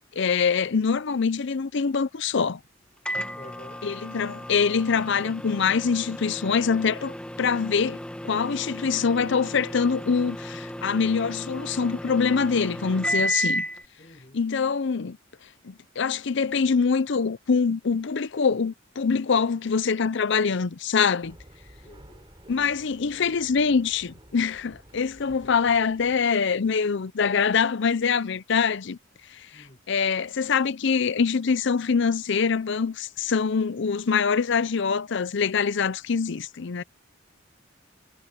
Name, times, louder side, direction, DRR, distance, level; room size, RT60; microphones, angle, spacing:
voice 1, 0.1-2.6 3.8-13.7 14.3-15.2 15.6-21.4 22.5-29.0 29.3-36.8, left 5 dB, 65° left, 0.6 m, -24 dB
Microwave oven, 3.1-13.8, equal, 5° left, 1.7 m, -34 dB
voice 2, 3.3-3.9 14.0-14.4 21.8-22.3 25.3-25.5 29.5-29.8, left 1 dB, 35° left, 4.3 m, -49 dB
sound 1, 21.2-26.2, right 1 dB, 25° right, 5.7 m, -52 dB
head